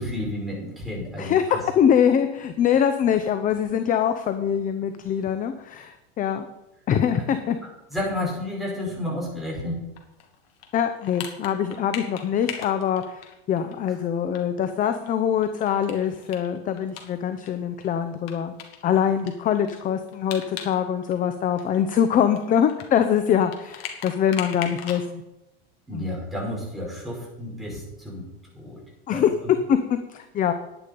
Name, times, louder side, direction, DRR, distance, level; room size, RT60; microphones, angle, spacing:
voice 1, 0.0-1.6 7.9-9.8 25.9-28.2 28.5-28.8 29.1-29.2, left 1 dB, ahead, -4 dB, 5.2 m, -31 dB
voice 2, 1.2-6.5 6.9-7.6 10.7-18.5 18.8-25.2 25.9-26.1 29.1-29.3 29.7-30.5, left 8 dB, 25° left, 9 dB, 0.8 m, -23 dB
sound 1, 10.0-13.7 14.0-14.1 14.3-14.4 14.8-17.5 17.8-17.9 18.3-20.8 21.0-25.0, left 9 dB, 65° left, 2.5 m, -38 dB
10.5 x 10.0 x 5.4 m, 0.94 s
supercardioid pair, 130°, 31 cm